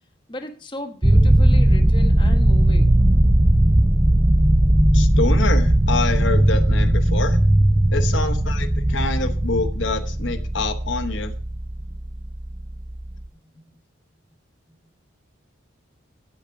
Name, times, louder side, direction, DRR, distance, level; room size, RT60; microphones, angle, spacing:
voice 1, 0.3-2.9, left 1 dB, 25° left, 5 dB, 1.1 m, -36 dB
sound 1, 1.0-13.2, right 1 dB, 15° right, 0.6 m, -18 dB
voice 2, 4.9-7.4 7.9-11.3, left 3 dB, 65° left, 6 dB, 1.0 m, -26 dB
8.7 x 8.1 x 5.8 m, 0.42 s
head